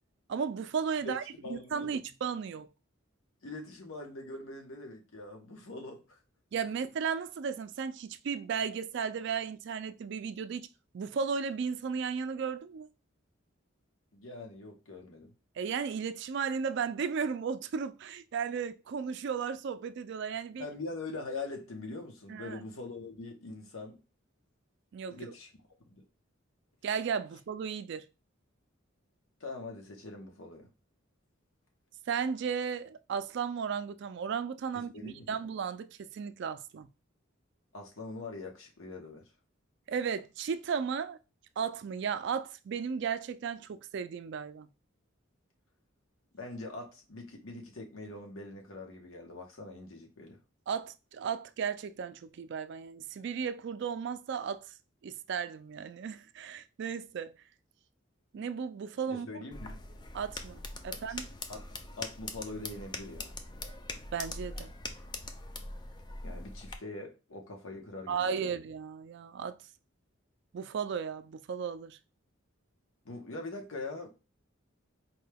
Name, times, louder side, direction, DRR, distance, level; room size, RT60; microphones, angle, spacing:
voice 1, 0.3-1.2 1.5-2.7 6.5-10.7 10.9-12.9 15.6-20.6 22.3-22.6 24.9-25.3 26.8-28.1 32.1-36.9 39.9-41.2 41.6-44.7 50.7-54.7 55.0-57.3 58.3-59.3 60.1-61.3 64.1-64.7 68.1-69.6 70.5-72.0, right 6 dB, 55° right, 0.3 m, -35 dB
voice 2, 1.4-1.9 3.4-6.2 14.1-15.3 20.6-24.0 25.1-25.5 25.9-26.0 29.4-30.7 34.7-35.4 37.7-39.2 46.3-50.4 59.1-59.8 61.1-61.2 61.5-61.7 62.0-63.4 66.2-68.5 73.0-74.1, left 3 dB, 80° left, 1.0 m, -43 dB
sound 1, 59.5-66.8, left 2 dB, 20° left, 0.3 m, -42 dB
4.4 x 2.2 x 3.3 m
head